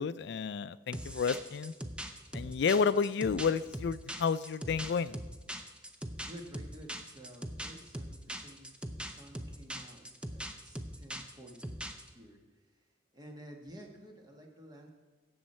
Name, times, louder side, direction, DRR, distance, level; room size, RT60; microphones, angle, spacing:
voice 1, 0.0-1.7 2.3-5.1, left 5 dB, 60° left, 15 dB, 0.3 m, -31 dB
sound 1, 0.9-12.1, right 1 dB, 5° right, 0.6 m, -41 dB
voice 2, 6.2-8.7 9.0-10.0 10.3-11.7 12.1-12.4 13.1-14.9, equal, 20° right, 1 dB, 1.5 m, -51 dB
16.5 x 7.2 x 4.4 m, 1.3 s
head